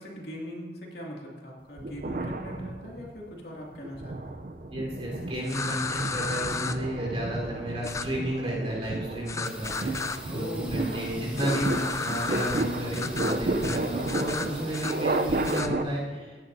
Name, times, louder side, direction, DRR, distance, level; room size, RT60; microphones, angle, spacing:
voice 1, 0.0-4.4 10.2-11.4, equal, 70° left, -2 dB, 2.3 m, -40 dB
sound 1, 1.8-3.2 3.7-15.8, right 2 dB, 50° right, 0.5 m, -32 dB
voice 2, 4.7-16.4, right 1 dB, 35° right, -4 dB, 3.9 m, -32 dB
sound 2, 5.5-6.8 7.8-8.1 9.3-10.2 11.3-12.6 12.9-13.4 13.6-13.8 14.1-14.9 15.4-15.7, left 4 dB, 15° left, 0.3 m, -33 dB
sound 3, 9.4-15.6, equal, 5° right, 1.5 m, -44 dB
16.5 x 10.5 x 2.7 m, 1.4 s
head